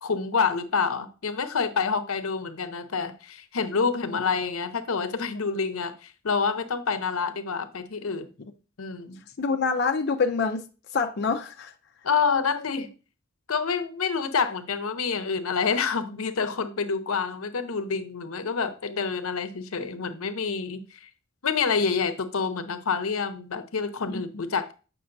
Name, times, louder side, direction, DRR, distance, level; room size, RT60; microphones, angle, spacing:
voice 1, 0.0-8.3 8.8-9.2 12.0-12.9 13.5-21.1 21.4-24.7, left 5 dB, 90° left, 0.7 m, -27 dB
voice 2, 9.4-10.6 10.9-11.7 24.0-24.2, left 4 dB, 50° left, 0.5 m, -26 dB
7.9 x 6.0 x 2.6 m
head